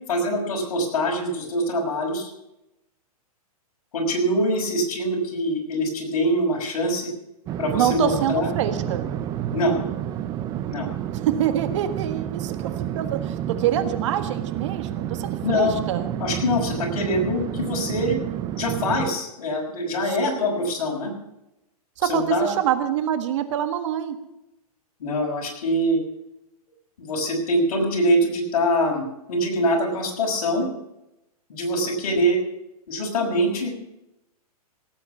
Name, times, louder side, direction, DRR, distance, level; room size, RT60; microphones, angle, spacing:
voice 1, 0.1-2.3 3.9-7.1 7.6-8.5 9.5-9.7 10.7-10.9 15.4-15.8 16.2-18.2 18.6-21.1 22.1-22.5 25.0-26.0 27.0-30.7 31.5-32.4 32.9-34.0, equal, 60° left, 0 dB, 6.0 m, -24 dB
sound 1, 7.5-19.1, right 11 dB, 20° right, 0.6 m, -30 dB
voice 2, 7.7-9.1 11.3-16.1 20.0-20.5 22.0-24.2, right 10 dB, 50° right, 9 dB, 1.5 m, -26 dB
17.5 x 8.7 x 7.1 m, 0.89 s
hypercardioid pair, 150°, 20 cm